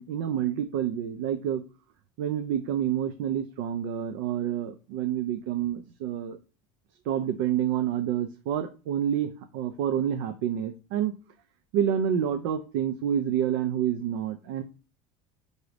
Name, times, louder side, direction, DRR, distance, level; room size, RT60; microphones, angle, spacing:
voice 1, 0.0-1.6 2.2-6.4 7.1-11.1 11.7-14.6, right 9 dB, 85° right, 8 dB, 0.5 m, -28 dB
5.9 x 2.7 x 3.2 m, 0.33 s
cardioid pair, 180°, 11 cm